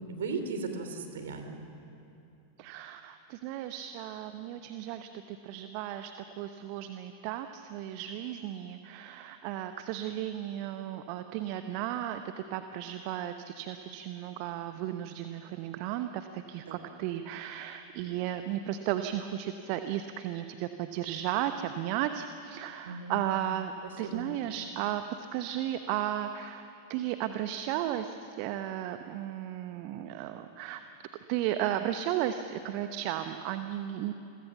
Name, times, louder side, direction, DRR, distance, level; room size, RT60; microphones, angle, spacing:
voice 1, 0.0-1.7 16.7-16.8 22.8-23.2 23.8-24.2, right 4 dB, 60° right, 7 dB, 3.2 m, -37 dB
voice 2, 2.6-12.2 12.5-23.7 24.0-25.0 25.3-30.8 31.3-34.1, right 12 dB, 45° right, 9 dB, 1.0 m, -34 dB
30.0 x 22.0 x 7.2 m, 2.8 s
figure-of-eight pair, 90°, 0 cm